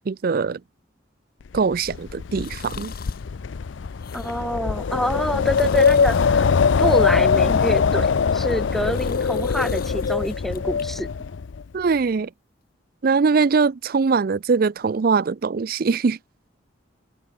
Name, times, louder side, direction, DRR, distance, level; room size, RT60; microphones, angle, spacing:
voice 1, 0.1-0.6 1.5-2.9 11.7-12.3 13.0-16.2, right 5 dB, 50° right, 0.4 m, -21 dB
Wind, 1.5-11.6, left 5 dB, 70° left, 0.5 m, -22 dB
sound 1, 2.3-3.3 3.8-4.6 5.3-6.4 7.0-7.9 8.4-10.9 11.3-11.4, left 7 dB, 50° left, 3.6 m, -44 dB
voice 2, 4.1-6.5 6.8-11.1, equal, ahead, 0.8 m, -26 dB
head